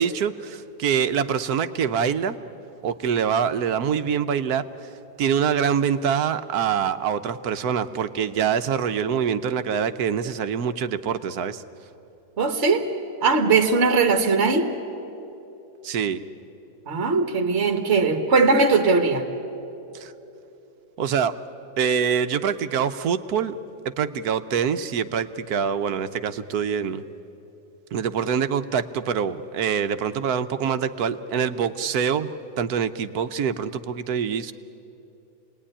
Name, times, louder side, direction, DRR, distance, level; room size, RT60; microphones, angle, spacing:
voice 1, 0.0-2.4 2.8-4.6 5.2-11.6 15.8-16.2 19.9-20.1 21.0-21.3 21.8-23.5 24.0-27.0 27.9-32.3 32.6-34.5, right 7 dB, 70° right, 10 dB, 1.3 m, -25 dB
voice 2, 12.4-12.9 13.2-14.7 16.9-19.3, right 4 dB, 45° right, 5 dB, 1.6 m, -20 dB
28.0 x 19.5 x 10.0 m, 2.9 s
omnidirectional pair, 1.7 m